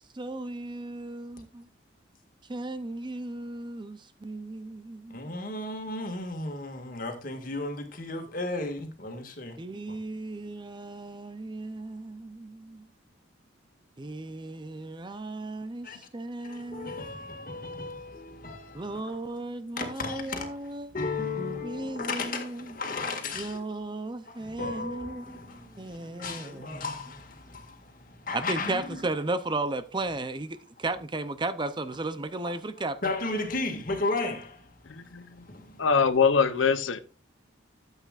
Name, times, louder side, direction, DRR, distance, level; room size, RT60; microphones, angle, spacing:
voice 1, 0.1-1.7 2.5-5.3 9.6-12.9 14.0-17.1 18.7-20.9 21.6-22.8 23.3-26.8 28.3-33.0, right 2 dB, 25° right, 0.6 m, -35 dB
voice 2, 5.1-9.6 15.8-16.0 16.4-19.2 19.8-20.5 20.9-23.6 24.3-29.0 32.5-32.6 33.0-35.8, left 3 dB, 45° left, 2.0 m, -35 dB
voice 3, 34.9-35.4 35.8-37.0, left 5 dB, 85° left, 0.7 m, -23 dB
13.0 x 8.2 x 2.5 m
head